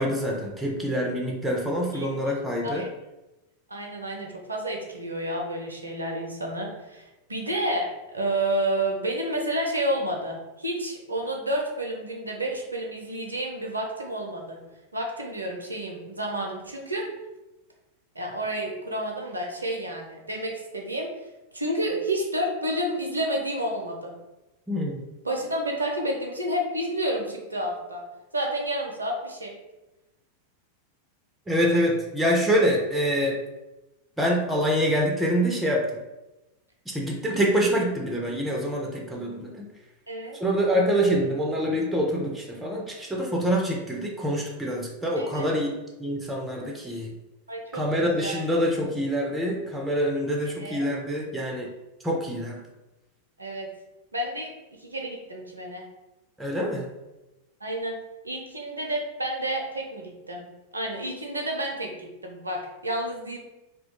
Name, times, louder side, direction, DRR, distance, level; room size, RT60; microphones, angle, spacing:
voice 1, 0.0-2.8 24.7-25.0 31.5-33.4 34.2-35.8 36.9-39.7 40.4-45.7 46.0-47.1 47.7-51.7 52.0-52.6 56.4-56.9, equal, 5° right, 0 dB, 0.4 m, -25 dB
voice 2, 3.7-7.9 8.1-14.6 14.9-17.1 18.2-21.1 21.5-24.1 25.2-28.0 28.3-29.6 40.1-40.4 45.2-45.6 47.5-48.4 50.6-50.8 53.4-53.7 54.1-54.5 54.8-55.8 57.6-58.0 58.2-60.5 60.7-63.4, right 1 dB, 80° right, 1 dB, 0.4 m, -30 dB
2.2 x 2.1 x 2.8 m, 1.0 s
figure-of-eight pair, 90°, 0 cm